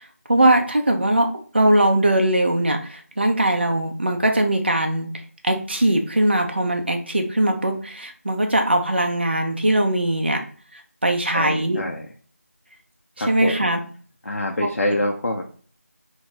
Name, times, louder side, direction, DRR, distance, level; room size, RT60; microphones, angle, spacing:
voice 1, 0.3-5.1 5.4-10.4 10.7-11.8 13.2-13.8 14.6-14.7, right 1 dB, 40° right, 4 dB, 0.4 m, -20 dB
voice 2, 11.3-12.1 13.2-13.7 14.3-15.5, left 1 dB, 65° left, 0 dB, 0.5 m, -25 dB
2.3 x 2.0 x 3.8 m, 0.43 s
figure-of-eight pair, 180°, 8 cm